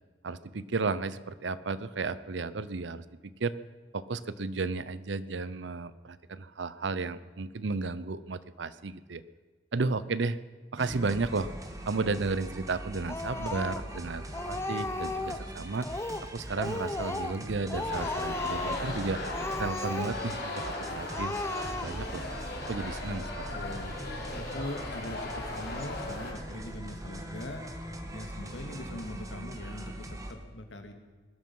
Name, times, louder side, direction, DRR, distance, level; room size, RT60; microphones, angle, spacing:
voice 1, 0.2-3.5 3.9-9.2 9.7-10.4 10.7-11.5 11.9-15.9 16.3-19.2 19.6-22.3 22.7-23.6, right 3 dB, 80° right, 16 dB, 0.7 m, -33 dB
sound 1, 10.8-30.3, right 1 dB, 20° right, 1.6 m, -41 dB
Speech, 13.1-14.0 14.3-15.5 15.8-16.3 16.6-17.4 17.7-18.9 19.3-20.4 20.7-20.8 21.1-22.1, left 2 dB, 15° left, 0.7 m, -35 dB
sound 2, 17.7-26.3, left 2 dB, 65° left, 3.5 m, -38 dB
voice 2, 23.5-27.7 28.1-30.9, left 1 dB, 85° left, 5 dB, 2.1 m, -42 dB
20.5 x 12.0 x 5.5 m, 1.4 s
head